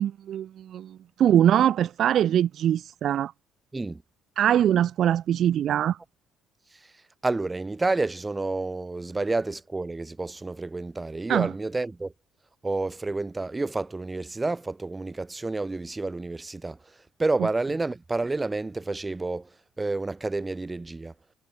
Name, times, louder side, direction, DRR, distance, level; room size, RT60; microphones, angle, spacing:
voice 1, 0.0-3.3 4.4-6.0 11.3-11.5, right 10 dB, 55° right, 0.3 m, -22 dB
voice 2, 7.2-12.1 12.6-16.8 17.2-19.5 19.8-21.1, right 3 dB, 15° right, 3.9 m, -29 dB
cardioid pair, 120°, 0 cm